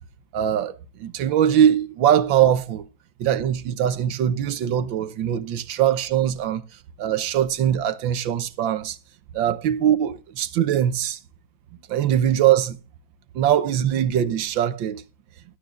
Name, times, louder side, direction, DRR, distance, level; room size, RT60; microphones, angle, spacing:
voice 1, 0.3-2.9 3.2-6.6 7.0-9.0 9.3-11.2 11.9-12.8 13.4-15.0, right 10 dB, 75° right, 1.6 m, -21 dB
19.0 x 11.5 x 2.5 m
omnidirectional pair, 2.2 m